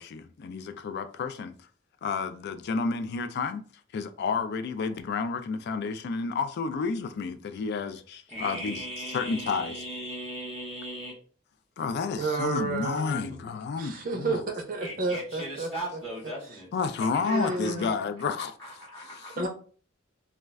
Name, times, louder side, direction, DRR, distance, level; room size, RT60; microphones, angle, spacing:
voice 1, 0.0-1.5 2.0-3.6 3.9-8.8 9.1-9.8 11.8-14.4 16.7-18.5 19.4-19.5, left 4 dB, 55° left, 0.3 m, -30 dB
voice 2, 8.3-11.2 14.8-16.7 17.0-17.9 18.6-19.4, right 1 dB, 10° left, 0.7 m, -38 dB
voice 3, 12.1-13.3 13.8-16.0 17.2-17.9 19.4-19.5, right 3 dB, 45° right, 0.5 m, -31 dB
2.3 x 2.1 x 3.4 m
head